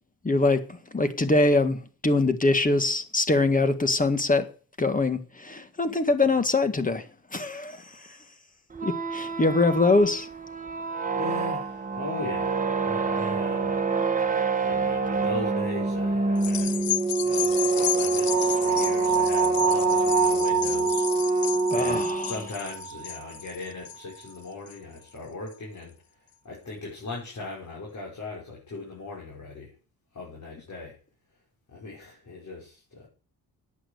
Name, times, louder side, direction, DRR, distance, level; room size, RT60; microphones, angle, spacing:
voice 1, 0.2-4.5 4.8-7.1 7.3-8.2 8.8-10.3 21.7-22.3, left 2 dB, 20° left, 1.8 m, -23 dB
sound 1, 8.7-22.5, right 3 dB, 20° right, 1.6 m, -26 dB
voice 2, 11.1-13.8 14.6-16.8 17.2-21.1 21.7-25.9 26.4-29.7 30.1-31.0 31.7-33.1, left 3 dB, 50° left, 5.7 m, -38 dB
sound 2, 16.4-25.0 25.5-25.6, left 13 dB, 70° left, 0.9 m, -33 dB
sound 3, 18.3-23.4, right 10 dB, 50° right, 0.9 m, -29 dB
11.0 x 8.9 x 8.3 m
cardioid pair, 85°, 37 cm